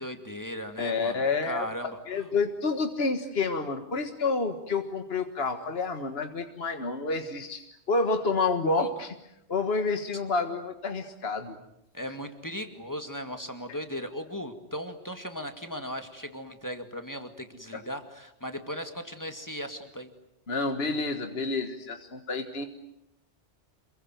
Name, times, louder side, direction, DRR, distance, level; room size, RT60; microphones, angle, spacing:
voice 1, 0.0-2.0 8.8-8.9 11.9-20.1, equal, 15° left, 6 dB, 2.2 m, -37 dB
voice 2, 0.8-1.7 2.1-9.2 9.5-11.6 17.7-17.8 20.5-22.7, left 3 dB, 60° left, 6 dB, 1.9 m, -29 dB
28.0 x 22.5 x 9.3 m, 0.84 s
omnidirectional pair, 1.1 m